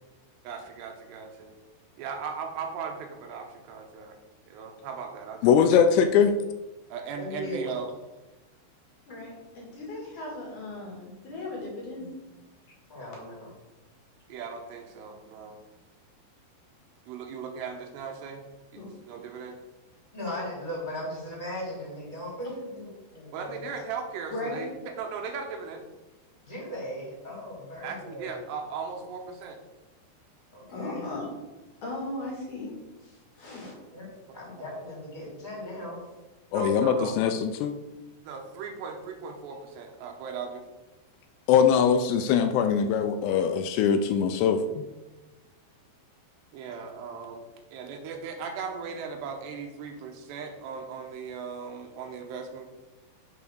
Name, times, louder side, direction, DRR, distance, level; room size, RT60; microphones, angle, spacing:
voice 1, 0.4-1.5 2.0-4.2 4.5-5.5 6.9-7.9 14.3-15.6 17.1-18.4 18.7-19.6 23.3-25.9 27.8-29.6 36.5-37.2 38.2-40.7 46.5-47.4 47.7-52.7, right 5 dB, 80° right, 4 dB, 2.9 m, -37 dB
voice 2, 5.4-6.3 36.5-37.7 41.5-44.8, left 7 dB, 85° left, 8 dB, 2.7 m, -22 dB
voice 3, 7.2-7.8 12.9-13.5 20.1-23.7 26.4-28.4 30.5-31.1 33.9-36.0, left 1 dB, 10° left, -5 dB, 2.7 m, -37 dB
voice 4, 9.1-12.2 18.8-18.9 24.3-24.6 30.7-31.3 31.8-32.7 33.0-33.7, left 2 dB, 55° left, -3 dB, 3.1 m, -37 dB
6.8 x 5.4 x 6.3 m, 1.1 s
omnidirectional pair, 5.1 m